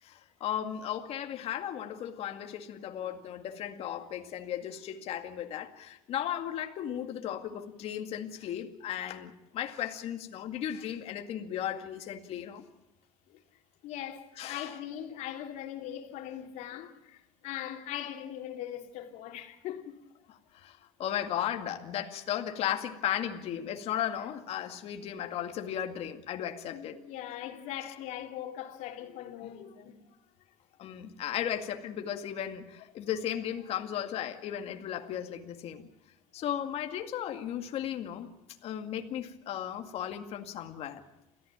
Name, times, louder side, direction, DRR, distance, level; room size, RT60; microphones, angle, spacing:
voice 1, 0.0-12.6 14.4-14.7 20.3-27.0 30.8-35.8 36.3-38.3 38.6-41.0, left 10 dB, 50° left, 2.1 m, -35 dB
voice 2, 13.8-20.0 26.7-30.0, left 11 dB, 65° left, 3.0 m, -40 dB
28.5 x 15.0 x 8.9 m
cardioid pair, 140°, 13 cm